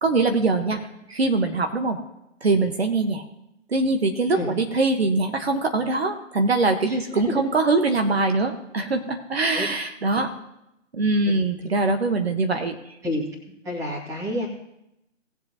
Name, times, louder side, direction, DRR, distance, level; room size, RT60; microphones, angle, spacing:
voice 1, 0.0-0.8 1.1-2.0 2.4-3.2 3.7-10.3 10.9-12.7, right 3 dB, 55° right, 6 dB, 1.4 m, -22 dB
voice 2, 13.6-14.5, left 1 dB, 10° right, -3 dB, 2.2 m, -28 dB
19.5 x 7.6 x 3.0 m, 0.85 s
figure-of-eight pair, 140°, 37 cm